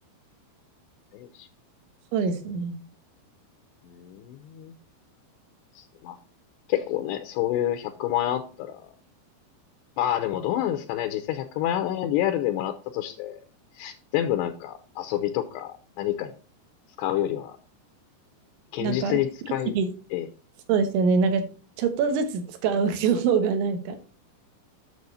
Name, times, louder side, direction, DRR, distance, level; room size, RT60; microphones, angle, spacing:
voice 1, 1.1-1.5 3.9-4.7 5.7-6.2 6.7-8.9 10.0-13.4 13.8-16.3 17.0-17.6 18.7-19.7 20.1-20.3, left 12 dB, 80° left, 8 dB, 2.7 m, -28 dB
voice 2, 2.1-2.8 18.8-19.2 19.8-19.9 20.7-21.4 21.8-24.0, right 5 dB, 80° right, 8 dB, 3.6 m, -24 dB
9.5 x 6.9 x 4.1 m, 0.37 s
omnidirectional pair, 5.3 m